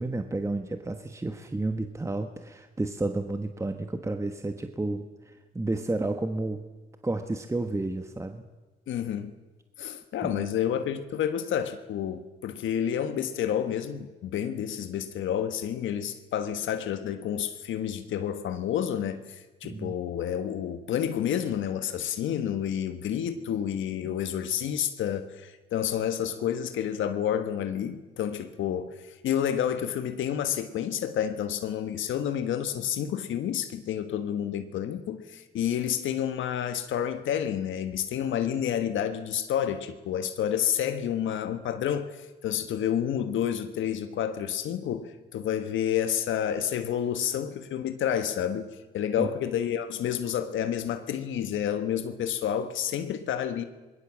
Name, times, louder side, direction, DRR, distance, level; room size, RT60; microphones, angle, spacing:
voice 1, 0.0-6.6 7.0-8.4 10.2-10.5 19.6-19.9 24.0-24.2 49.2-49.3, right 2 dB, 15° right, 1.3 m, -31 dB
voice 2, 8.9-9.3 9.8-53.6, left 9 dB, 75° left, 1.3 m, -29 dB
24.0 x 20.5 x 7.4 m
cardioid pair, 90°, 20 cm